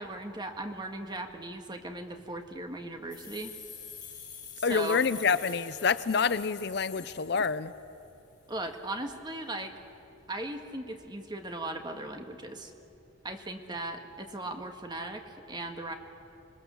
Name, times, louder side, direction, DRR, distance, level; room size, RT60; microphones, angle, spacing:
voice 1, 0.0-3.5 4.7-5.0 8.5-9.7 10.3-12.7 13.2-16.0, right 2 dB, 20° right, 5 dB, 1.7 m, -38 dB
sound 1, 3.1-7.9, left 7 dB, 20° left, 7.1 m, -46 dB
voice 2, 4.6-7.7, left 5 dB, 55° left, 15 dB, 0.5 m, -27 dB
27.0 x 20.5 x 7.1 m, 2.8 s
head